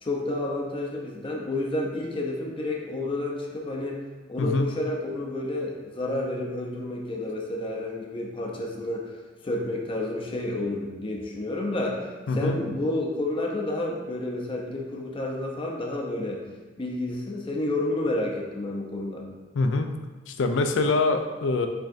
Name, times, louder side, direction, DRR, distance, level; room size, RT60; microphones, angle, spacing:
voice 1, 0.0-4.0 4.3-16.4 16.8-19.2, left 2 dB, 30° left, -1 dB, 0.5 m, -30 dB
voice 2, 12.3-12.6 19.5-19.9 20.3-21.7, left 3 dB, 80° left, 6 dB, 0.4 m, -24 dB
4.5 x 4.5 x 2.5 m, 1.3 s
head